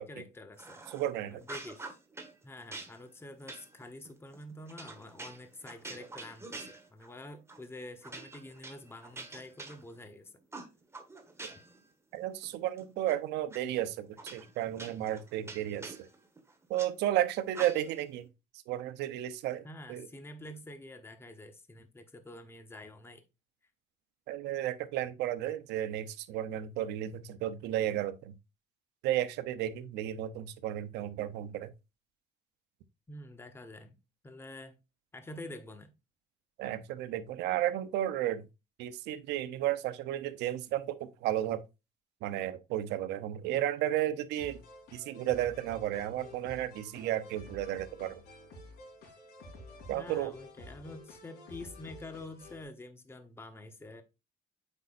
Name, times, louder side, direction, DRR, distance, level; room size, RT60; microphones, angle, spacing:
voice 1, 0.0-0.8 1.3-2.0 2.4-10.3 19.6-23.2 33.1-34.0 34.2-34.8 35.1-35.9 49.9-54.0, left 1 dB, 15° left, 1.0 m, -47 dB
sound 1, 0.6-1.1 1.4-2.3 2.7-7.2 7.5-7.7 8.0-10.1 10.5-11.8 12.1-13.1 13.5-13.6 14.2-16.9 17.5-18.1, right 3 dB, 15° right, 1.4 m, -46 dB
voice 2, 0.9-1.4 12.1-15.9 16.7-18.3 18.7-20.1 24.3-28.3 29.0-31.7 36.6-38.4 38.8-41.6 42.2-44.6 44.9-48.1 49.9-50.3, right 12 dB, 85° right, 0.8 m, -33 dB
sound 2, 44.4-52.6, left 2 dB, 75° left, 3.7 m, -51 dB
8.1 x 5.4 x 2.6 m
cardioid pair, 110°, 17 cm